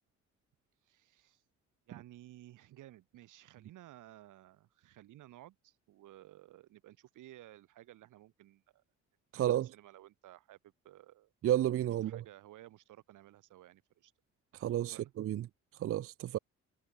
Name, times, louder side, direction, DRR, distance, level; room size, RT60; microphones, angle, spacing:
voice 1, 0.8-1.4 1.9-8.8 9.4-11.3 12.0-14.1 14.8-15.1, right 14 dB, 85° right, 7.0 m, -56 dB
voice 2, 9.3-9.7 11.4-12.2 14.5-15.5 15.8-16.4, right 12 dB, 50° right, 0.5 m, -31 dB
cardioid pair, 90°, 30 cm